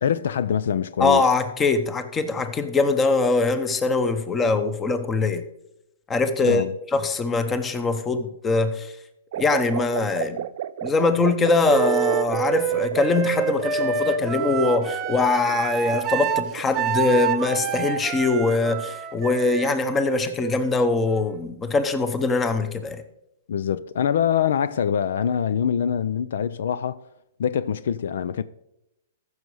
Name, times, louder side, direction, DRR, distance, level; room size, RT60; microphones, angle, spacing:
voice 1, 0.0-1.2 6.4-6.7 23.5-27.0 27.4-28.4, left 8 dB, 75° left, 0.4 m, -24 dB
voice 2, 1.0-5.4 6.1-8.9 9.4-10.5 10.8-23.0, left 3 dB, 15° left, 0.9 m, -22 dB
sound 1, 9.3-18.9, right 11 dB, 60° right, 0.4 m, -33 dB
Wind instrument woodwind instrument, 11.7-21.5, right 9 dB, 25° right, 0.9 m, -27 dB
14.5 x 6.3 x 4.8 m
hypercardioid pair, 140°, 0 cm